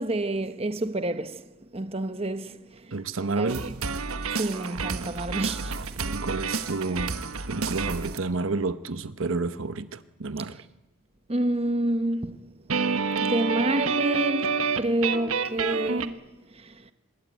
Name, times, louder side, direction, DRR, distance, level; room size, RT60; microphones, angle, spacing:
voice 1, 0.0-1.5 1.7-2.9 3.4-3.7 4.3-5.9 11.3-12.5 13.2-16.2 16.5-16.9, right 1 dB, 25° right, 1.0 m, -29 dB
voice 2, 2.9-3.7 6.1-7.2 7.5-10.6, right 3 dB, 60° right, 0.9 m, -30 dB
sound 1, 3.5-8.2 12.7-16.1, right 5 dB, 80° right, 1.4 m, -29 dB
24.5 x 21.0 x 9.4 m
head